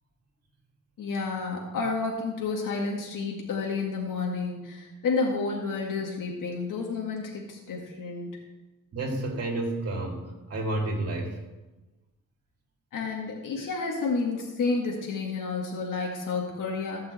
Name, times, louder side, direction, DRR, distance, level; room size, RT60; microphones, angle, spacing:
voice 1, 1.0-8.5 12.9-17.1, left 4 dB, 90° left, -1 dB, 2.1 m, -30 dB
voice 2, 8.9-10.2 10.5-11.4, right 2 dB, 50° right, 0 dB, 2.4 m, -30 dB
15.0 x 5.5 x 8.2 m, 1.1 s
wide cardioid pair, 150°, 31 cm